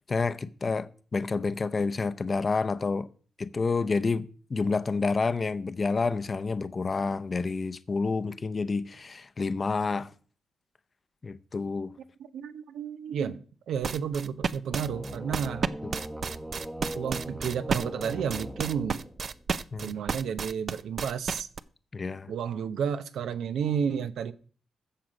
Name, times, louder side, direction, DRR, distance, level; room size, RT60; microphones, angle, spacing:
voice 1, 0.1-3.1 3.4-10.1 11.2-11.9 19.7-19.9 21.9-22.3, left 4 dB, 30° left, 0.6 m, -29 dB
voice 2, 12.3-15.7 16.9-19.1 19.8-21.5 22.3-24.3, right 7 dB, 85° right, 0.8 m, -31 dB
sound 1, 13.8-21.6, right 5 dB, 45° right, 0.5 m, -31 dB
sound 2, 14.7-19.4, right 1 dB, 10° right, 0.9 m, -39 dB
14.0 x 7.5 x 5.2 m
wide cardioid pair, 145°, 0 cm